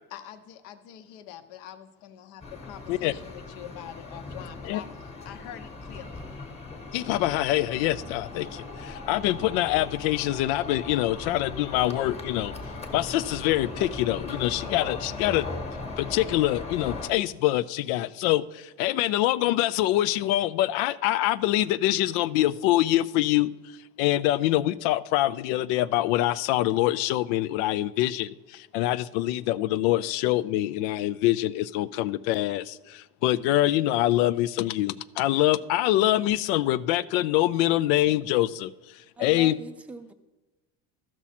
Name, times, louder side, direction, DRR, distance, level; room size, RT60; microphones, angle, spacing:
voice 1, 0.1-4.9 5.2-6.4, left 10 dB, 70° left, 0.9 m, -44 dB
sound 1, 2.4-17.1, left 3 dB, 20° left, 1.2 m, -38 dB
voice 2, 6.9-12.5 12.9-15.5 16.0-23.5 24.0-38.7 39.2-39.5, left 15 dB, 90° left, 0.5 m, -25 dB
voice 3, 39.2-40.1, right 3 dB, 5° right, 0.4 m, -41 dB
14.5 x 6.1 x 4.2 m
cardioid pair, 150°, 32 cm